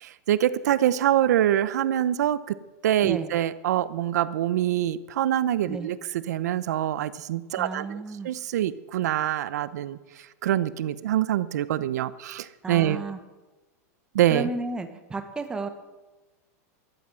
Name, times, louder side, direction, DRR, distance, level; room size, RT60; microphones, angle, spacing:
voice 1, 0.0-2.6 2.8-8.0 8.2-10.0 10.4-13.0 14.1-14.5, right 12 dB, 85° right, 16 dB, 0.8 m, -25 dB
voice 2, 7.6-8.3 12.6-13.2 14.3-15.7, right 3 dB, 10° right, 8 dB, 1.2 m, -33 dB
14.0 x 12.5 x 7.7 m, 1.2 s
supercardioid pair, 165°, 9 cm